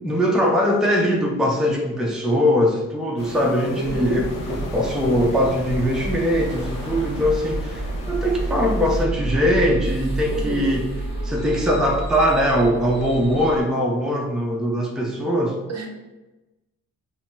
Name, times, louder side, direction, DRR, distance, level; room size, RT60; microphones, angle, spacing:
voice 1, 0.0-10.9 11.2-15.6, equal, ahead, 0 dB, 0.5 m, -21 dB
sound 1, 3.2-9.1, left 3 dB, 60° left, 0.5 m, -38 dB
sound 2, 3.8-13.6, right 2 dB, 15° left, 1.1 m, -29 dB
voice 2, 3.8-4.3 10.3-10.7 15.7-15.9, right 2 dB, 40° right, 2 dB, 0.7 m, -29 dB
4.1 x 2.0 x 2.6 m, 1.1 s
supercardioid pair, 50°, 37 cm